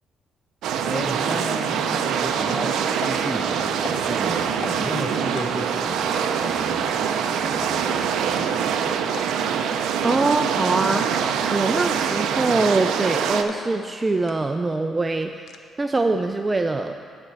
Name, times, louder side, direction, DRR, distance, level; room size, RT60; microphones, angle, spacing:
sound 1, 0.6-13.4, right 7 dB, 85° right, 0.4 m, -24 dB
voice 1, 0.8-9.1, equal, ahead, 5 dB, 0.7 m, -33 dB
sound 2, 3.0-3.2 3.7-4.2 4.5-4.9 5.4-5.7 6.1-6.5 6.9-7.0 7.2-7.3 7.6-7.9 8.3-8.5 9.1-9.5 10.0-10.5 10.9-11.2 11.7-12.1 12.6-12.9 13.4-13.6 13.9-14.0 14.3-14.7 15.0-15.6, left 7 dB, 65° left, 0.6 m, -37 dB
voice 2, 10.0-11.2 11.5-15.3 15.8-17.0, right 3 dB, 25° right, 6 dB, 0.3 m, -23 dB
9.7 x 4.3 x 7.4 m, 2.4 s
cardioid pair, 90°, 0 cm